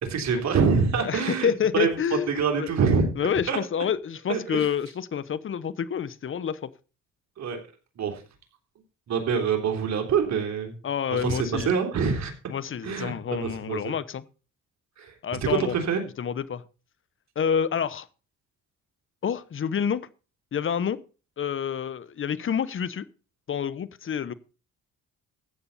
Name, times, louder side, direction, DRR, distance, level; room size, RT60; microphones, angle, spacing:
voice 1, 0.0-1.9 2.3-3.1 3.5-3.6 4.3-4.7 7.4-7.6 8.0-8.2 9.1-10.7 11.1-12.3 12.8-14.0 15.0-15.1 15.4-16.0, right 6 dB, 65° right, 3.4 m, -25 dB
voice 2, 1.0-2.7 3.2-6.7 10.8-11.7 12.5-14.2 15.2-15.7 16.2-16.6 17.4-18.1 19.2-20.1 20.5-21.0 21.4-23.1 23.5-24.3, left 8 dB, 45° left, 0.9 m, -28 dB
14.5 x 8.4 x 4.2 m
cardioid pair, 90°, 30 cm